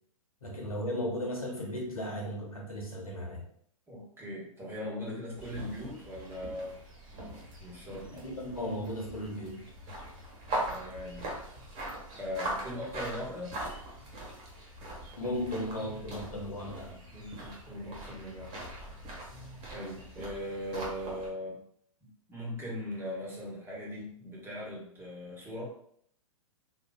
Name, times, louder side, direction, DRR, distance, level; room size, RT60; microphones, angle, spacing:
voice 1, 0.4-3.4 8.1-9.7 15.2-17.0 19.3-19.6, equal, 90° left, 0 dB, 1.0 m, -36 dB
voice 2, 3.9-6.7 7.6-8.1 10.7-11.3 12.2-13.6 17.1-18.5 19.7-21.6 22.3-25.6, left 1 dB, 15° right, -4 dB, 1.2 m, -39 dB
sound 1, 5.4-21.3, right 1 dB, 35° right, 1.4 m, -41 dB
4.1 x 2.6 x 2.3 m, 0.65 s
figure-of-eight pair, 115°, 18 cm